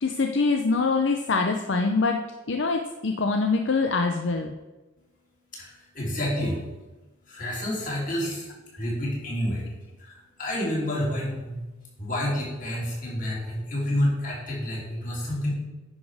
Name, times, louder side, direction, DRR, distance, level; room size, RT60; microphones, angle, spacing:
voice 1, 0.0-4.5, left 4 dB, 65° left, 4 dB, 0.6 m, -24 dB
voice 2, 5.5-6.6 7.3-8.5 8.8-9.7 10.0-11.6 12.0-15.5, left 1 dB, 40° left, -4 dB, 3.2 m, -29 dB
9.8 x 6.3 x 4.9 m, 1.1 s
head